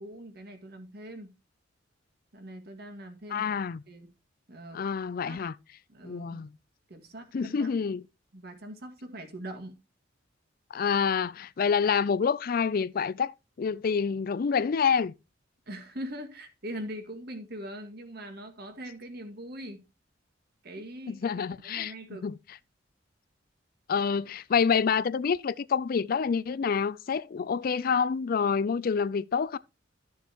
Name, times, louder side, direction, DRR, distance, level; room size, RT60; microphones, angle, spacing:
voice 1, 0.0-1.3 2.3-3.5 3.9-4.1 4.5-4.8 5.3-5.4 5.9-6.4 6.9-7.7 8.3-9.8 15.7-19.8 20.6-22.3, right 1 dB, 55° right, 2.0 m, -42 dB
voice 2, 3.3-3.8 4.7-5.6 6.0-6.5 7.3-8.0 10.7-15.1 21.1-21.9 22.2-22.3 23.9-29.6, left 6 dB, 50° left, 0.4 m, -27 dB
13.5 x 7.0 x 3.0 m
head